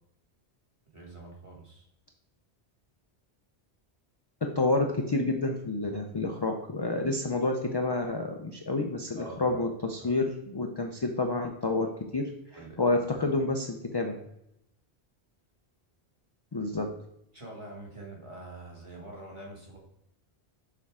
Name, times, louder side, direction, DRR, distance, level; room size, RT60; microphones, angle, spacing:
voice 1, 0.9-1.9 9.2-9.7 10.0-10.1 12.5-12.8 17.3-19.8, right 2 dB, 30° right, -2 dB, 1.7 m, -45 dB
voice 2, 4.4-12.3 12.8-14.2 16.5-16.9, left 2 dB, 35° left, 3 dB, 0.4 m, -29 dB
6.7 x 4.3 x 3.6 m, 0.80 s
omnidirectional pair, 1.1 m